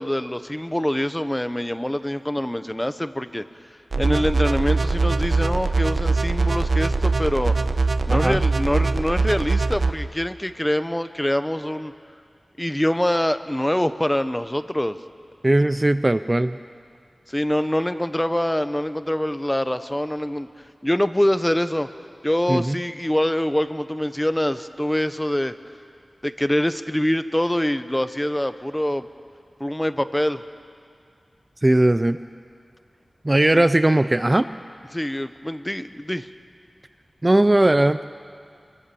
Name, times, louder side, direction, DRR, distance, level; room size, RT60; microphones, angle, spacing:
voice 1, 0.0-3.4 4.0-7.5 8.1-11.9 12.6-15.0 17.3-20.5 20.8-21.9 22.2-25.5 26.2-29.1 29.6-30.4 33.4-33.6 34.9-36.3, left 1 dB, 10° left, 11 dB, 0.9 m, -24 dB
sound 1, 3.9-9.9, right 3 dB, 80° right, 0.9 m, -22 dB
voice 2, 8.1-8.4 15.4-16.6 22.5-22.8 31.6-32.2 33.2-34.5 37.2-38.0, right 1 dB, 25° right, 12 dB, 0.5 m, -18 dB
24.5 x 23.5 x 7.0 m, 2.3 s
wide cardioid pair, 70°, 0 cm